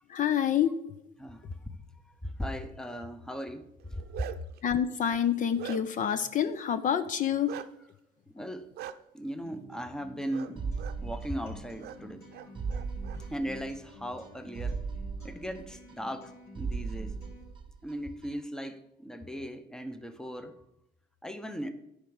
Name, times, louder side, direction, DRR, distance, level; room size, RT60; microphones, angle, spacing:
voice 1, 0.1-0.7 4.6-7.6, left 9 dB, 50° left, 0.6 m, -27 dB
voice 2, 1.2-1.6 2.1-4.3 8.3-8.7 9.1-10.7 11.0-12.2 13.3-14.8 15.2-17.2 17.8-20.5 21.2-21.7, equal, 5° left, 0.9 m, -38 dB
Bark, 3.8-4.6 5.1-6.1 7.5-7.7 8.8-8.9 10.3-10.5 10.8-11.0 11.8-12.0 12.3-13.2, right 12 dB, 70° right, 0.6 m, -41 dB
Acoustic guitar, 9.4-17.4, right 1 dB, 65° left, 3.8 m, -51 dB
sound 1, 10.6-11.9 12.2-12.3 12.6-13.9 14.2-14.3 14.6-16.3 16.6-17.9 18.2-18.3, right 4 dB, 30° right, 0.9 m, -37 dB
10.0 x 4.8 x 7.1 m
cardioid pair, 110°, 17 cm